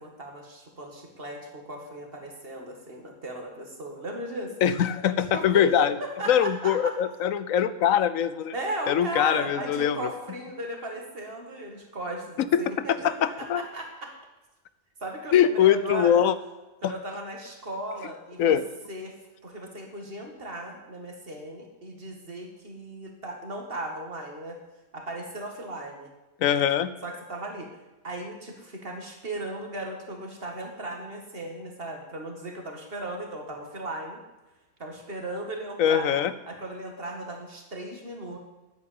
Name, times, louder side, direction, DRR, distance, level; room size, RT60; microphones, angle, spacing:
voice 1, 0.0-4.5 5.2-7.0 8.5-14.1 15.0-16.3 16.8-18.6 18.9-19.1 19.4-24.6 24.9-26.1 27.0-27.7 28.0-34.2 34.8-36.2 36.5-38.4, right 1 dB, 40° right, 2 dB, 2.2 m, -36 dB
voice 2, 4.6-6.0 6.3-8.5 8.9-10.1 12.4-12.6 12.9-13.6 15.3-16.3 16.8-16.9 18.4-18.6 26.4-26.9 35.8-36.3, left 9 dB, 75° left, 14 dB, 1.1 m, -22 dB
10.0 x 8.6 x 8.7 m, 1.1 s
omnidirectional pair, 1.5 m